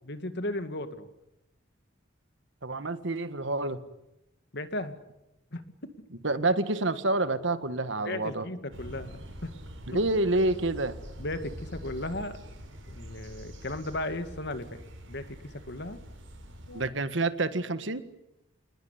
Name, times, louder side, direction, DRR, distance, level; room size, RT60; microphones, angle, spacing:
voice 1, 0.1-1.1 4.5-5.0 5.5-5.6 8.0-9.5 9.9-10.0 11.2-12.4 12.9-14.8 15.1-16.0 16.7-16.9, left 1 dB, 60° left, 10 dB, 2.2 m, -36 dB
voice 2, 2.6-3.8 6.2-8.4 9.9-11.0 16.7-18.0, right 2 dB, 65° right, 12 dB, 1.7 m, -28 dB
sound 1, 8.7-16.9, equal, 90° right, 6.6 m, -45 dB
27.5 x 20.5 x 9.7 m, 0.89 s
head